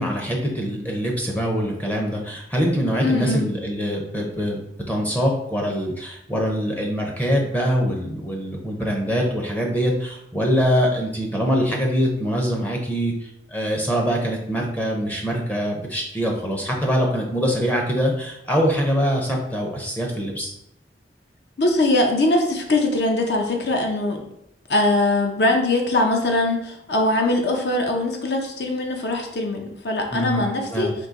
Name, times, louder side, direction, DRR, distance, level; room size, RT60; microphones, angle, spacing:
voice 1, 0.0-4.6 4.9-20.5 30.1-30.4 30.7-30.9, equal, 10° left, 0 dB, 0.5 m, -23 dB
voice 2, 3.0-3.4 21.6-24.3 24.7-30.9, left 2 dB, 60° left, 2 dB, 0.6 m, -21 dB
3.8 x 2.7 x 3.9 m, 0.78 s
head